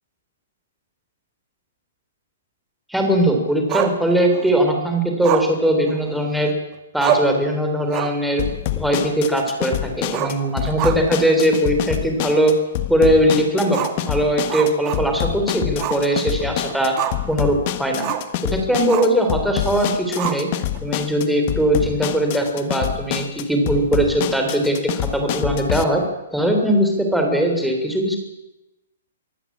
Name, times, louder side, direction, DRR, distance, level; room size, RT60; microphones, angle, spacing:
voice 1, 2.9-6.5 6.9-8.4 8.7-12.5 12.9-16.9 17.3-18.1 18.5-20.5 20.8-26.0 26.3-28.2, right 1 dB, ahead, 2 dB, 3.5 m, -20 dB
Growling, 3.7-4.5 5.2-6.5 6.7-6.8 7.0-7.4 7.8-8.3 8.6-8.7 10.0-11.3 11.6-11.7 12.3-12.4 13.7-15.3 15.8-16.1 16.4-17.3 18.0-18.3 18.9-19.2 20.2-20.8, right 12 dB, 25° right, 1.6 m, -27 dB
sound 1, 8.4-25.8, left 13 dB, 35° left, 1.4 m, -27 dB
24.5 x 15.0 x 8.7 m, 0.98 s
hypercardioid pair, 165°, 0 cm